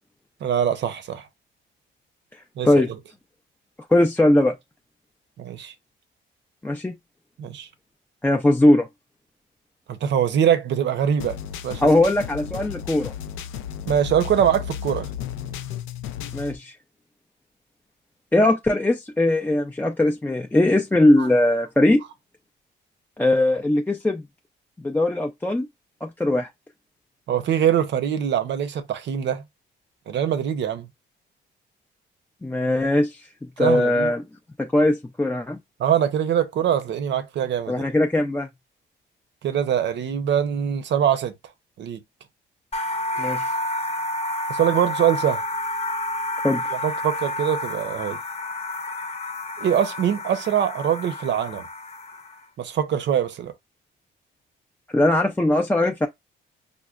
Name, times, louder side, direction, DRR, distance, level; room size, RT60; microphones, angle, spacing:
voice 1, 0.4-1.3 2.6-2.7 5.4-5.7 7.4-7.7 9.9-11.4 11.6-11.9 13.9-15.1 21.2-21.3 27.3-29.4 30.1-30.9 33.6-34.1 35.8-37.8 39.4-41.3 41.8-42.0 44.5-45.4 46.8-48.2 49.6-51.7 52.6-53.5, right 9 dB, 65° right, 0.7 m, -23 dB
voice 2, 3.9-4.6 6.6-6.9 8.2-8.9 11.8-13.1 16.3-16.7 18.3-22.0 23.2-24.2 24.8-25.7 26.0-26.5 32.4-33.3 33.6-34.2 34.6-35.6 37.7-38.5 43.2-43.5 46.4-46.6 54.9-56.1, left 1 dB, 10° left, 0.4 m, -20 dB
sound 1, 11.2-16.6, left 9 dB, 85° left, 0.4 m, -34 dB
sound 2, 42.7-52.4, left 1 dB, 30° left, 0.7 m, -30 dB
5.1 x 2.1 x 2.4 m
cardioid pair, 90°, 20 cm